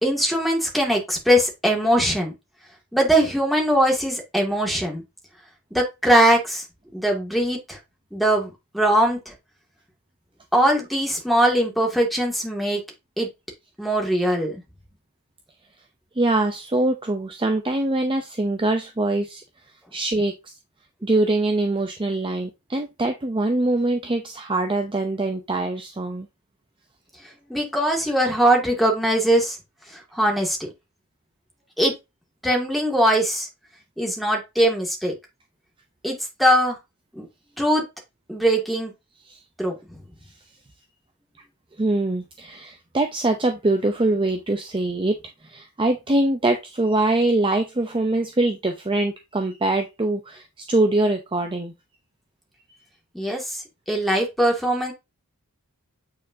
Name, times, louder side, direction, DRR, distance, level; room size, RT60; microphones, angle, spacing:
voice 1, 0.0-2.3 2.9-5.0 5.7-6.6 6.9-7.8 8.1-9.3 10.5-12.8 13.2-13.3 13.8-14.6 27.5-29.6 30.1-30.6 31.8-31.9 32.4-33.5 34.0-35.1 36.0-36.1 36.4-36.8 37.1-37.3 37.6-37.8 38.3-38.9 39.6-39.8 53.1-53.6 53.9-54.9, right 1 dB, ahead, 0 dB, 2.2 m, -21 dB
voice 2, 16.2-19.4 19.9-20.5 21.0-26.3 39.2-39.4 41.8-51.7, right 2 dB, 25° right, 5 dB, 0.6 m, -23 dB
8.7 x 4.6 x 2.8 m, 0.22 s
head